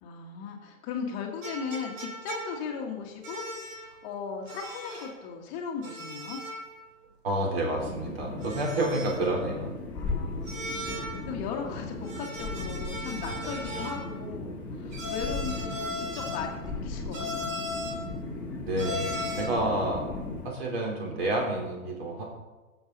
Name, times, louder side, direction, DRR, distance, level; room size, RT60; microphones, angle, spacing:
voice 1, 0.0-3.4 3.8-6.4 9.9-17.6, left 6 dB, 20° left, 1 dB, 1.4 m, -37 dB
sound 1, 1.4-2.8 3.2-3.9 4.5-5.2 5.8-6.7 7.0-7.1 8.4-9.4 10.5-11.3 12.0-14.1 14.9-16.6 17.1-18.1 18.8-19.6, left 1 dB, 65° right, 3.2 m, -37 dB
voice 2, 7.2-9.7 13.3-13.4 18.7-20.0 20.4-22.2, right 1 dB, 45° right, -1 dB, 3.7 m, -29 dB
sound 2, 7.7-20.5, left 3 dB, 5° left, 1.3 m, -37 dB
20.5 x 7.3 x 4.0 m, 1.2 s
hypercardioid pair, 165°, 41 cm